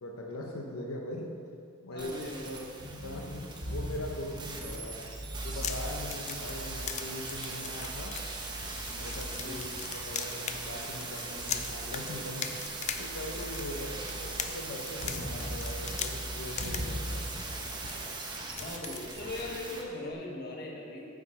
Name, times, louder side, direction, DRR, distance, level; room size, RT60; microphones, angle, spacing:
voice 1, 0.0-1.3 1.8-2.1 3.0-5.0 5.4-8.1 8.9-9.6 9.9-12.6 13.0-17.2, left 1 dB, 85° left, -1 dB, 0.9 m, -41 dB
voice 2, 1.9-2.7 9.4-9.7 13.7-13.9 18.5-21.1, left 2 dB, 50° left, -2 dB, 1.5 m, -39 dB
sound 1, 2.0-19.8 20.1-20.2, right 3 dB, 20° right, 1.0 m, -40 dB
sound 2, 2.8-17.9, equal, 85° right, 1.7 m, -42 dB
sound 3, 5.3-19.8, left 8 dB, 35° left, 0.4 m, -42 dB
9.6 x 5.2 x 6.6 m, 2.4 s
head